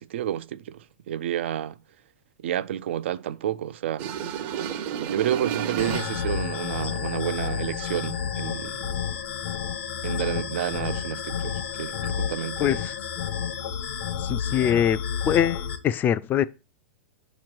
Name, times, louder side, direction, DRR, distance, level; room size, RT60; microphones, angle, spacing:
voice 1, 0.0-1.8 2.4-4.1 5.0-8.9 10.0-12.8, right 11 dB, 75° right, 0.4 m, -30 dB
sound 1, 4.0-6.4, right 9 dB, 55° right, 0.7 m, -31 dB
sound 2, 5.8-15.8, left 8 dB, 70° left, 1.3 m, -30 dB
voice 2, 12.6-13.1 14.2-15.0 15.3-16.4, left 9 dB, 30° left, 0.4 m, -23 dB
6.3 x 3.1 x 5.8 m
hypercardioid pair, 110°, 6 cm